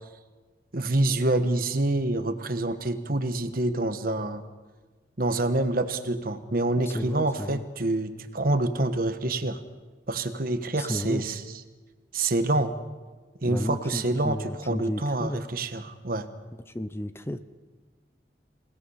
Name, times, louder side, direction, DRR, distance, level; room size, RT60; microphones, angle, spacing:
voice 1, 0.7-4.4 5.2-9.6 10.1-11.4 12.1-12.7 13.4-14.4 14.7-16.3, right 2 dB, 55° right, 9 dB, 1.3 m, -26 dB
voice 2, 6.8-7.6 10.8-11.3 13.4-15.4 16.7-17.4, left 1 dB, 15° left, 12 dB, 0.6 m, -33 dB
27.5 x 17.5 x 5.6 m, 1.3 s
head